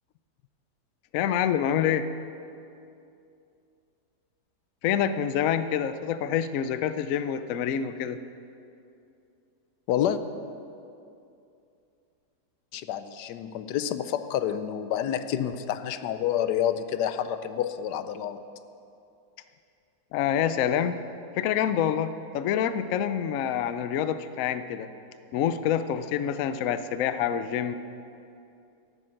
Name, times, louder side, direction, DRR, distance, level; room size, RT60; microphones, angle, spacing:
voice 1, 1.1-2.0 4.8-8.2 20.1-21.0 21.4-24.9 25.3-27.7, left 9 dB, 70° left, 11 dB, 0.8 m, -27 dB
voice 2, 9.9-10.2 12.7-18.4, left 10 dB, 85° left, 12 dB, 1.2 m, -28 dB
13.5 x 9.0 x 6.4 m, 2.6 s
omnidirectional pair, 1.8 m